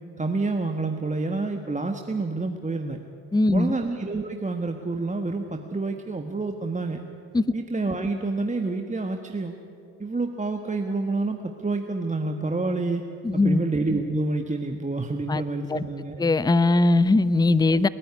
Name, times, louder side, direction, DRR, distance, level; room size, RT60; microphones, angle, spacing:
voice 1, 0.2-3.0 3.5-7.0 7.5-9.5 10.0-13.0 13.3-16.2, right 3 dB, 15° right, 5 dB, 1.4 m, -28 dB
voice 2, 3.3-3.7 7.3-7.4 13.2-13.6 15.3-15.4 15.7-15.8 16.2-17.9, left 2 dB, 10° left, 16 dB, 0.7 m, -20 dB
29.5 x 9.9 x 9.8 m, 2.6 s
hypercardioid pair, 55°, 43 cm